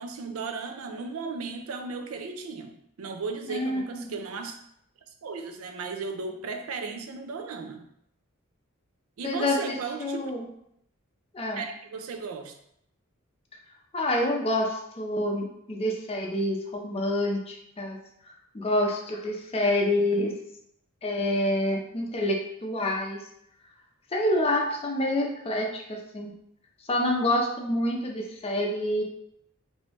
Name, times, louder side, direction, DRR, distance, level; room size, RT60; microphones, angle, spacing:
voice 1, 0.0-4.5 5.2-7.8 9.2-10.3 11.6-12.5, right 4 dB, 80° right, 5 dB, 0.4 m, -35 dB
voice 2, 3.5-4.2 9.2-10.5 11.3-11.7 13.9-18.0 18.5-20.3 21.0-23.2 24.1-26.3 26.9-29.0, left 1 dB, 30° left, 0 dB, 0.5 m, -27 dB
3.2 x 2.7 x 3.0 m, 0.75 s
head